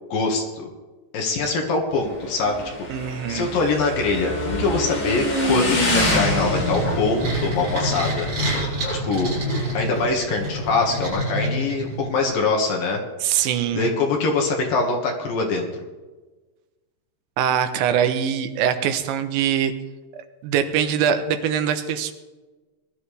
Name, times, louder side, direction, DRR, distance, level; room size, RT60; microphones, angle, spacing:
voice 1, 0.1-0.7 1.1-2.6 3.3-8.3 9.0-9.4 9.7-13.0 13.7-15.7, left 3 dB, 60° left, 1 dB, 3.0 m, -23 dB
Motorcycle / Engine, 1.9-11.1, left 1 dB, 35° left, 5.2 m, -26 dB
voice 2, 2.9-3.5 13.2-13.9 17.4-19.7 20.1-22.1, right 8 dB, 85° right, 9 dB, 3.3 m, -23 dB
sound 1, 6.1-12.3, right 1 dB, 35° right, 7.0 m, -28 dB
20.5 x 12.5 x 3.4 m, 1.2 s
omnidirectional pair, 5.1 m